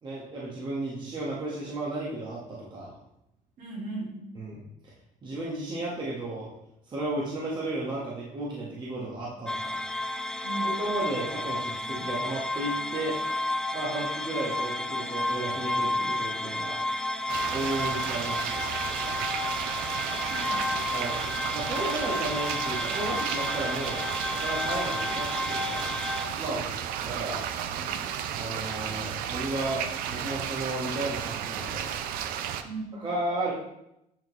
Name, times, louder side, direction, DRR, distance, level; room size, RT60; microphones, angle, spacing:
voice 1, 0.0-2.9 4.3-4.6 5.2-6.5 6.9-9.8 10.6-13.1 13.7-16.8 17.5-18.6 20.9-21.2 21.5-24.0 24.3-25.9 26.3-26.6 27.0-27.4 28.3-31.9 33.0-33.5, right 2 dB, 30° right, -5 dB, 1.1 m, -33 dB
voice 2, 3.6-4.3 10.4-10.8 17.6-17.7 20.3-20.7 27.8-28.1 32.6-33.0, right 3 dB, 60° right, -2 dB, 2.0 m, -37 dB
sound 1, 9.5-26.3, left 1 dB, 5° left, 0.3 m, -31 dB
sound 2, 17.3-32.6, right 9 dB, 75° right, 0.4 m, -33 dB
8.7 x 3.6 x 3.0 m, 0.83 s
cardioid pair, 130°, 15 cm